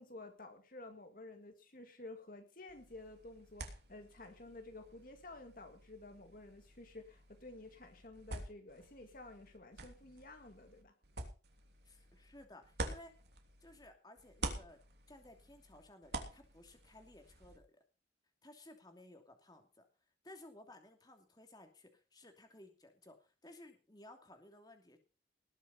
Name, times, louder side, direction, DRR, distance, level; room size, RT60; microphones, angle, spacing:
voice 1, 0.0-10.9, left 2 dB, 45° left, 6 dB, 2.0 m, -52 dB
sound 1, 2.7-13.9 14.2-17.6, right 2 dB, 60° right, 3.1 m, -48 dB
voice 2, 11.8-13.1 13.6-14.8 15.1-17.8 18.4-19.8 20.2-25.0, left 1 dB, 20° left, 5 dB, 2.8 m, -58 dB
20.0 x 7.3 x 5.6 m, 0.33 s
head